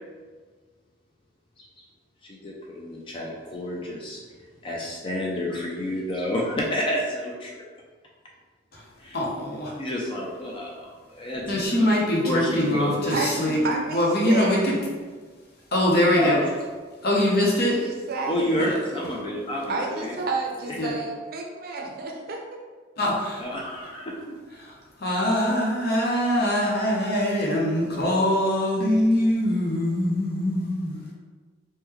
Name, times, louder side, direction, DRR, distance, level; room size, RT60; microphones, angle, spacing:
voice 1, 2.2-4.2 4.6-7.6 9.0-9.2 9.8-11.9 12.2-13.2 16.1-16.5 18.3-20.1 20.6-20.8 23.4-24.3, left 1 dB, 25° left, -2 dB, 0.4 m, -29 dB
voice 2, 9.1-9.8 11.5-13.6 13.9-14.8 15.7-16.4 17.0-17.8 18.6-18.7 20.8-20.9 23.0-23.4 24.6-24.7 25.0-31.1, left 1 dB, 55° left, -3 dB, 0.7 m, -23 dB
voice 3, 13.6-14.6 17.7-18.6 19.7-22.6, right 3 dB, 50° right, 1 dB, 0.5 m, -30 dB
3.0 x 2.1 x 3.5 m, 1.5 s
head